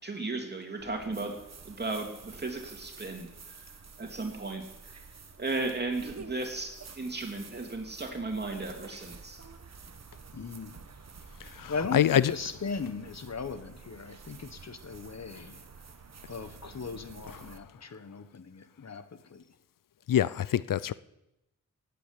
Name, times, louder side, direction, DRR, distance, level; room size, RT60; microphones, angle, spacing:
voice 1, 0.0-1.4 1.6-3.3 4.0-4.6 5.4-9.4, right 3 dB, 30° right, 3 dB, 3.0 m, -35 dB
sound 1, 0.8-17.6, right 5 dB, 55° right, 1.3 m, -50 dB
voice 2, 10.3-10.8 11.4-15.7 16.3-19.4, left 4 dB, 55° left, 10 dB, 1.3 m, -38 dB
voice 3, 11.6-12.2 20.1-20.9, left 10 dB, 85° left, 18 dB, 0.5 m, -25 dB
18.0 x 8.3 x 8.4 m, 0.89 s
wide cardioid pair, 100°, 32 cm